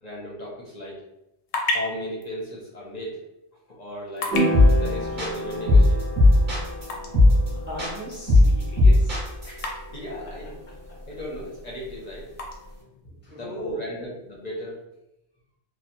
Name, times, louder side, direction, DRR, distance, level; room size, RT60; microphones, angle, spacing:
voice 1, 0.0-1.0 1.6-3.2 3.7-4.4 4.8-6.0 9.4-10.6 11.0-12.3 13.0-14.9, left 1 dB, 45° left, -5 dB, 0.6 m, -36 dB
sound 1, 1.0-14.9, left 2 dB, 85° left, 0.8 m, -38 dB
sound 2, 4.3-12.7, right 1 dB, 80° right, 1.2 m, -33 dB
sound 3, 4.5-4.9 5.2-6.8 7.1-7.5 7.8-9.6, left 2 dB, 45° right, 1.1 m, -16 dB
voice 2, 7.7-9.2 10.9-11.0 13.1-13.9, left 1 dB, 15° right, -5 dB, 0.4 m, -38 dB
2.8 x 2.1 x 2.5 m, 0.90 s
omnidirectional pair, 1.1 m